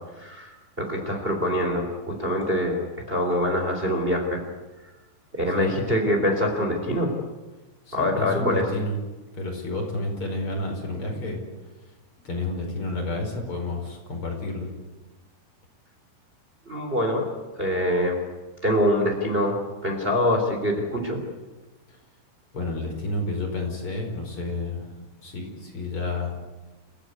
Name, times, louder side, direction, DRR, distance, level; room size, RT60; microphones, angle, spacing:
voice 1, 0.2-2.8 3.1-4.4 5.3-7.1 7.9-8.6 16.6-17.3 17.6-18.2 18.6-21.2, left 1 dB, 15° right, 3 dB, 3.4 m, -24 dB
voice 2, 7.9-9.0 9.3-11.4 12.2-14.7 21.9-22.0 22.5-24.9 25.2-26.3, left 2 dB, 30° left, 2 dB, 5.7 m, -30 dB
30.0 x 16.0 x 9.8 m, 1.2 s
omnidirectional pair, 4.7 m